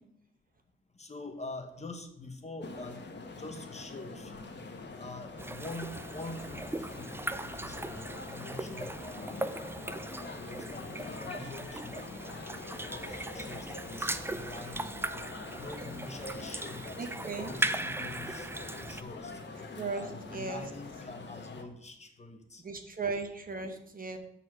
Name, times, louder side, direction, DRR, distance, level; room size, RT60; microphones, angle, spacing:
voice 1, 0.9-3.0 3.3-4.5 5.0-7.2 7.6-9.4 10.5-12.1 12.6-14.9 15.5-17.1 17.4-18.5 18.9-19.4 19.9-22.6, left 2 dB, 30° left, 5 dB, 1.0 m, -45 dB
sound 1, 2.6-21.6, left 3 dB, 55° left, 1.2 m, -44 dB
sound 2, 5.4-19.0, right 2 dB, 10° right, 0.3 m, -39 dB
voice 2, 17.0-17.5 19.8-20.0 20.3-20.6 22.6-24.2, right 4 dB, 45° right, 6 dB, 1.0 m, -36 dB
7.5 x 4.2 x 6.2 m, 0.76 s
wide cardioid pair, 100°, 21 cm